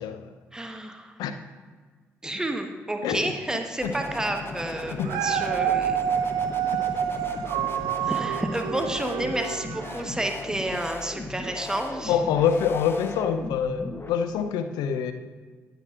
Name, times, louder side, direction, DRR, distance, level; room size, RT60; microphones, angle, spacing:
voice 1, 0.0-0.3 1.2-1.3 3.0-3.3 3.8-3.9 5.0-5.1 12.1-15.1, left 7 dB, 75° left, 9 dB, 0.5 m, -25 dB
voice 2, 0.5-1.1 2.2-6.0 8.0-12.2, right 1 dB, 10° right, 4 dB, 1.0 m, -30 dB
sound 1, 3.8-14.1, left 3 dB, 35° left, 0.9 m, -37 dB
Dog, 4.9-10.2 10.7-10.8, right 9 dB, 75° right, 0.3 m, -28 dB
10.0 x 8.8 x 2.4 m, 1.5 s
hypercardioid pair, 45°, 7 cm